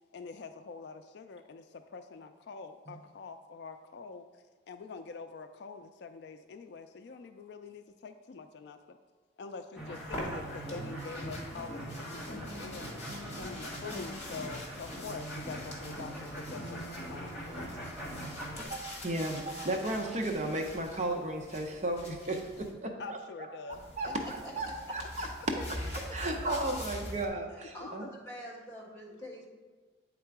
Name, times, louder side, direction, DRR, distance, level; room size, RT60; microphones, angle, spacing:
voice 1, 0.1-4.3 4.7-9.0 9.4-12.9 13.4-17.7 23.0-23.8 26.7-27.1 27.8-28.1 29.1-29.3, left 4 dB, 60° left, 8 dB, 0.3 m, -45 dB
sound 1, 9.8-18.6, right 1 dB, ahead, 1.0 m, -41 dB
sound 2, 9.9-22.7 23.7-27.3, left 1 dB, 35° left, 1.5 m, -45 dB
voice 2, 18.6-23.2 24.0-25.6 26.1-28.0, right 1 dB, 35° right, 3 dB, 0.6 m, -34 dB
voice 3, 24.0-24.7 25.6-25.7 26.0-26.7 27.5-29.5, equal, 15° left, -3 dB, 1.6 m, -46 dB
8.6 x 3.7 x 4.6 m, 1.4 s
head